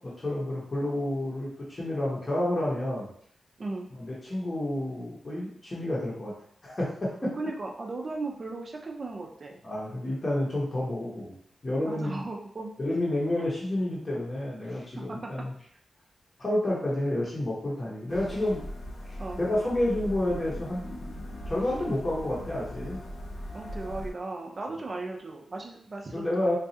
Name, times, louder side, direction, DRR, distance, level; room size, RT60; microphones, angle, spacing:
voice 1, 0.0-3.1 4.0-6.3 6.6-7.3 9.6-11.3 11.6-12.2 12.8-15.5 16.4-18.6 19.4-20.9 21.5-23.0 26.1-26.5, left 1 dB, 25° left, -5 dB, 0.8 m, -29 dB
voice 2, 3.6-3.9 7.4-9.6 11.9-12.7 13.4-13.5 14.9-15.2 19.2-19.4 23.5-26.5, right 3 dB, 35° right, 1 dB, 0.5 m, -36 dB
sound 1, 18.1-24.1, left 1 dB, 85° left, 0.6 m, -39 dB
3.9 x 2.3 x 2.7 m, 0.63 s
wide cardioid pair, 165°, 0 cm